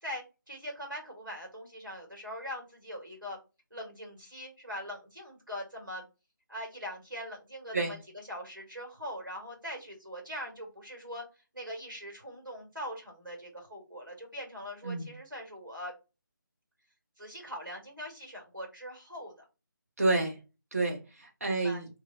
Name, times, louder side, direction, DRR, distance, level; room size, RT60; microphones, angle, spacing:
voice 1, 0.0-3.4 3.7-6.0 6.5-11.2 11.5-15.9 17.2-19.3 21.4-21.9, equal, 75° right, 0 dB, 1.9 m, -42 dB
voice 2, 20.0-20.4 20.7-21.8, right 2 dB, 45° right, 1 dB, 1.2 m, -29 dB
3.2 x 3.0 x 2.5 m, 0.28 s
figure-of-eight pair, 155°, 11 cm